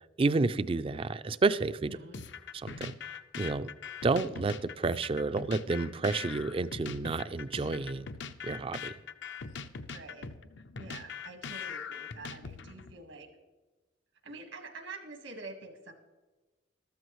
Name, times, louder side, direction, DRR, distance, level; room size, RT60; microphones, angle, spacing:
voice 1, 0.2-2.0 2.5-2.9 3.4-3.7 4.0-8.1 8.4-8.9, right 3 dB, 30° right, 14 dB, 0.4 m, -30 dB
voice 2, 1.9-2.2 9.9-10.3 10.8-13.3 14.2-15.9, right 3 dB, 85° right, 5 dB, 1.8 m, -46 dB
sound 1, 2.1-12.9, left 5 dB, 65° left, 0.6 m, -42 dB
14.0 x 13.0 x 3.1 m, 1.2 s
head